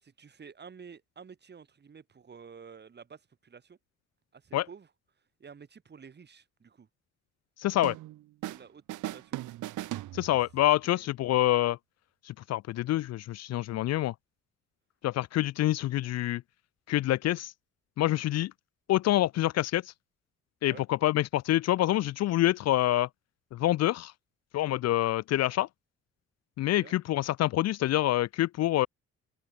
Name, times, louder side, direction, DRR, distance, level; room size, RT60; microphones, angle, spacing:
voice 1, 0.0-3.8 4.3-4.9 5.4-6.9 8.5-9.4 10.8-11.1 20.6-20.9 26.6-26.9, right 6 dB, 35° right, 1.5 m, -51 dB
voice 2, 7.6-8.0 10.1-11.8 12.3-14.1 15.0-16.4 16.9-17.5 18.0-18.5 18.9-19.8 20.6-23.1 23.5-24.1 24.5-25.7 26.6-28.9, left 14 dB, 60° left, 0.4 m, -26 dB
sound 1, 7.8-8.6 8.9-10.7, right 15 dB, 85° right, 1.4 m, -38 dB
cardioid pair, 90°, 30 cm